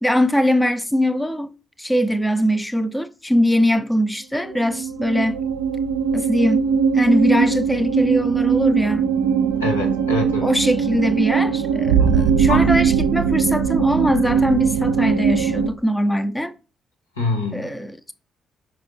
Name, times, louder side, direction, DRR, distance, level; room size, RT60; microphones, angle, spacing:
voice 1, 0.0-1.5 1.8-5.4 6.1-6.6 6.9-9.1 10.4-16.5 17.5-18.1, equal, 10° left, 0.7 m, -21 dB
sound 1, 4.4-15.7, right 6 dB, 75° right, 0.4 m, -20 dB
voice 2, 9.6-10.5 12.0-12.8 17.2-17.7, left 3 dB, 90° left, 1.1 m, -25 dB
5.9 x 5.6 x 3.2 m
figure-of-eight pair, 40°, 0 cm